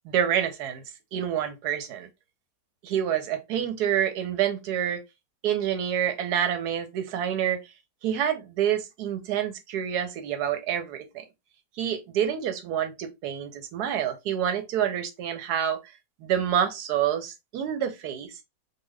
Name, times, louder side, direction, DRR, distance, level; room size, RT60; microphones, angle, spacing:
voice 1, 0.0-0.8 1.1-2.1 2.8-5.0 5.4-7.6 8.0-11.2 11.8-15.8 16.2-18.3, right 9 dB, 70° right, 1.1 m, -27 dB
2.8 x 2.5 x 3.1 m
omnidirectional pair, 1.9 m